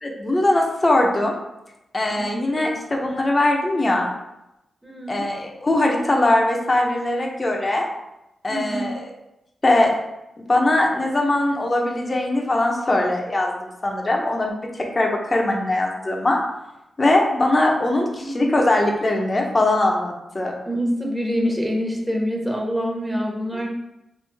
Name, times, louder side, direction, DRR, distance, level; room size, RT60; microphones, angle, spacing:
voice 1, 0.0-1.4 1.9-4.1 5.1-7.9 8.4-9.1 9.6-9.9 10.5-14.5 14.9-16.4 17.0-20.6, left 2 dB, 35° left, 0 dB, 0.7 m, -21 dB
voice 2, 2.1-2.7 4.8-5.2 8.5-8.9 18.2-18.3 20.6-23.7, equal, 15° right, 0 dB, 1.0 m, -26 dB
3.3 x 3.2 x 3.4 m, 0.90 s
cardioid pair, 55°, 0 cm